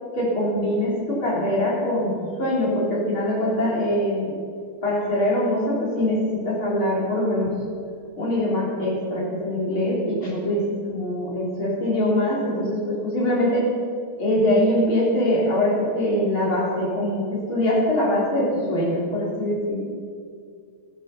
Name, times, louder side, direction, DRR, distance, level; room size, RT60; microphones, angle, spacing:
voice 1, 0.2-2.1 2.4-4.3 4.8-7.5 8.2-13.7 14.2-19.8, left 1 dB, 65° left, -5 dB, 4.6 m, -23 dB
14.0 x 10.0 x 6.7 m, 2.2 s
omnidirectional pair, 2.4 m